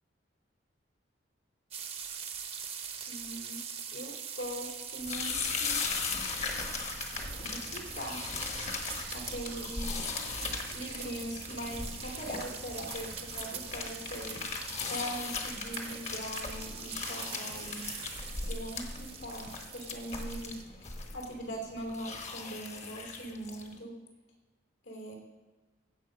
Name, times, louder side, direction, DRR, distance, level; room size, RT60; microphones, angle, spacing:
sound 1, 1.7-20.6, right 7 dB, 30° right, 0.9 m, -43 dB
voice 1, 3.1-3.6 3.9-5.8 7.3-8.2 9.1-10.0 10.7-14.4 14.9-17.9 18.4-24.0 24.8-25.1, right 1 dB, 80° left, 1 dB, 3.0 m, -41 dB
sound 2, 5.0-23.7, left 4 dB, 35° left, 1.1 m, -38 dB
16.0 x 6.5 x 5.1 m, 1.2 s
head